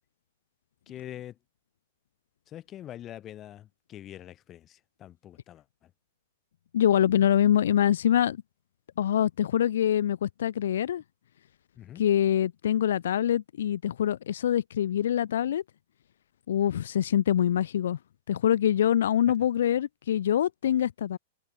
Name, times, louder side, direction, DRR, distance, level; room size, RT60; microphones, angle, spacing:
voice 1, 0.9-1.3 2.5-5.6 11.8-12.0, left 12 dB, 20° left, 2.2 m, -44 dB
voice 2, 6.7-8.4 9.0-11.0 12.0-15.6 16.5-18.0 18.3-21.2, left 10 dB, 80° left, 0.4 m, -24 dB
supercardioid pair, 175°, 0 cm